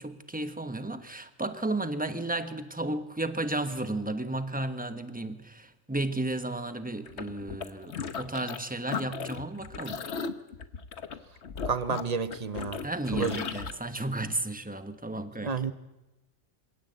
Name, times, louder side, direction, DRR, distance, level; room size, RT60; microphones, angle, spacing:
voice 1, 0.0-10.1 12.8-15.7, right 2 dB, 5° right, 1.2 m, -33 dB
sound 1, 7.1-8.6 8.9-13.7, left 6 dB, 60° left, 1.3 m, -36 dB
voice 2, 11.7-12.8 13.1-13.4 15.4-15.7, right 5 dB, 35° right, 0.9 m, -30 dB
25.5 x 17.5 x 8.1 m
omnidirectional pair, 1.3 m